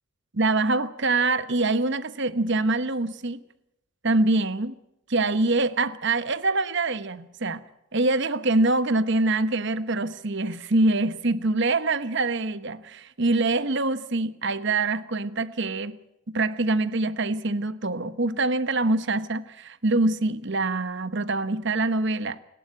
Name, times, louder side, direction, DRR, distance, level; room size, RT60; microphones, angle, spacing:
voice 1, 0.3-3.4 4.0-4.7 5.1-7.6 7.9-16.0 16.3-22.4, right 2 dB, 55° right, 14 dB, 1.1 m, -24 dB
28.5 x 12.0 x 8.8 m, 0.84 s
head